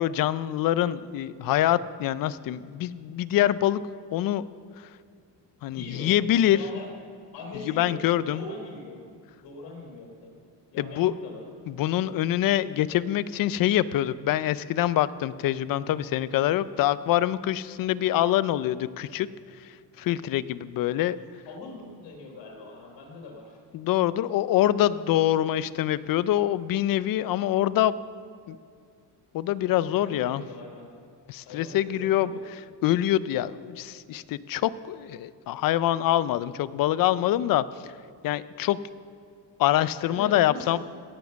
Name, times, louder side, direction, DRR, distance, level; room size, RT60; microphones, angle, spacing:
voice 1, 0.0-3.8 4.1-4.4 5.6-6.6 7.7-8.4 10.8-11.1 11.7-19.3 20.0-21.2 23.7-28.0 28.5-28.6 29.3-30.4 31.3-37.6 38.2-38.8 39.6-40.8, left 13 dB, 55° left, 16 dB, 0.5 m, -25 dB
voice 2, 5.7-6.1 6.5-6.9 7.3-9.0 9.4-10.4 10.7-11.4 21.1-23.6 29.9-30.9 31.5-32.4 40.0-40.8, left 3 dB, 75° left, 0 dB, 4.0 m, -41 dB
17.0 x 7.3 x 7.0 m, 2.2 s
cardioid pair, 155°, 43 cm